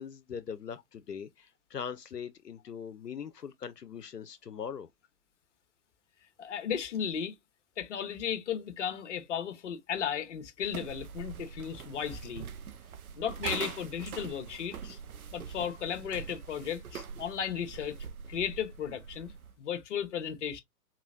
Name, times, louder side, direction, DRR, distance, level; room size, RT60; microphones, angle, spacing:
voice 1, 0.0-4.9, left 7 dB, 85° left, 0.7 m, -41 dB
voice 2, 6.4-7.3 7.8-12.5 13.2-15.0 15.3-18.0 18.3-20.6, left 8 dB, 50° left, 1.0 m, -35 dB
sound 1, 10.6-19.6, right 7 dB, 65° right, 0.7 m, -43 dB
4.1 x 3.0 x 2.5 m
figure-of-eight pair, 125°, 47 cm